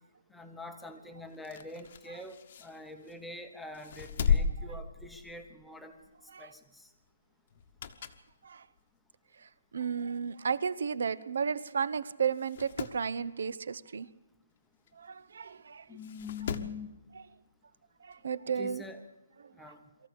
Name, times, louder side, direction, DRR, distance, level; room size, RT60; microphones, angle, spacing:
voice 1, 0.3-6.0 6.4-6.9 15.9-16.9 18.5-19.1 19.6-19.8, left 3 dB, ahead, 5 dB, 0.9 m, -45 dB
sound 1, 1.3-3.3 3.7-5.6 6.0-6.2 7.5-8.3 8.8-8.9 9.8-9.9 10.1-10.2 10.4-10.5 11.3-11.5 11.8-11.9 12.3-13.0 14.9-15.0 16.0-16.8 18.1-18.2, left 6 dB, 35° left, 1.1 m, -35 dB
voice 2, 9.7-14.1 15.0-15.8 18.0-18.8, right 6 dB, 60° right, 17 dB, 0.9 m, -33 dB
23.5 x 14.5 x 8.4 m, 1.0 s
hypercardioid pair, 175°, 0 cm